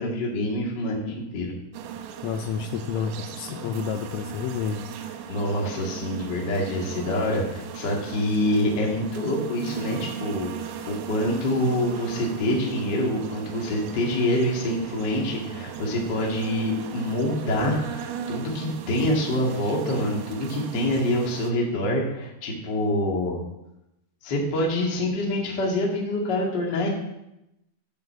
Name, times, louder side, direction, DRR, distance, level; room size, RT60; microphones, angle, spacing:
voice 1, 0.0-1.5 5.3-23.4 24.2-26.9, left 1 dB, 65° left, -2 dB, 1.0 m, -26 dB
sound 1, 1.7-21.5, right 8 dB, 80° right, 3.6 m, -37 dB
voice 2, 2.2-4.9 10.8-10.9, left 7 dB, 85° left, 7 dB, 2.8 m, -30 dB
8.0 x 7.6 x 7.6 m, 0.88 s
omnidirectional pair, 5.9 m